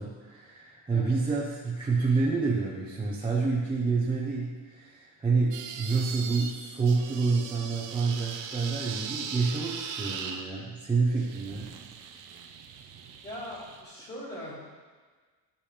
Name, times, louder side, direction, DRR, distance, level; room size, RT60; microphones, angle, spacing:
voice 1, 0.0-11.7, right 4 dB, 10° right, -6 dB, 0.8 m, -28 dB
voice 2, 0.9-1.4 13.2-14.6, left 1 dB, 25° left, -5 dB, 2.5 m, -41 dB
sound 1, 5.5-6.5 6.8-10.5 11.2-13.8, right 6 dB, 50° right, 0.8 m, -39 dB
13.0 x 7.0 x 3.4 m, 1.4 s
cardioid pair, 175°, 41 cm